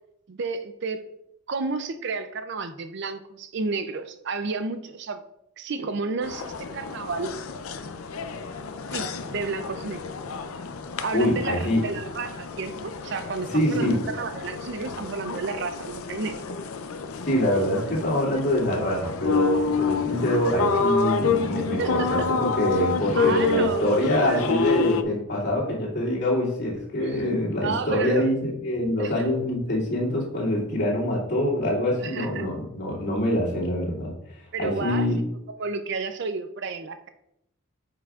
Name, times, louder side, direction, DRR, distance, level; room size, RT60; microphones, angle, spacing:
voice 1, 0.3-1.0 1.5-5.2 5.6-7.3 8.9-10.0 11.0-16.4 21.8-22.3 23.1-24.4 24.8-24.9 27.0-28.3 29.0-29.1 32.0-32.5 34.5-35.1 35.6-37.1, right 4 dB, 55° right, 10 dB, 0.5 m, -31 dB
sound 1, 6.2-25.0, left 4 dB, 85° left, 0.5 m, -29 dB
voice 2, 11.1-11.8 13.5-14.0 17.3-34.1 34.6-35.2, left 1 dB, 55° left, -6 dB, 2.6 m, -25 dB
9.2 x 6.0 x 2.4 m, 0.80 s
head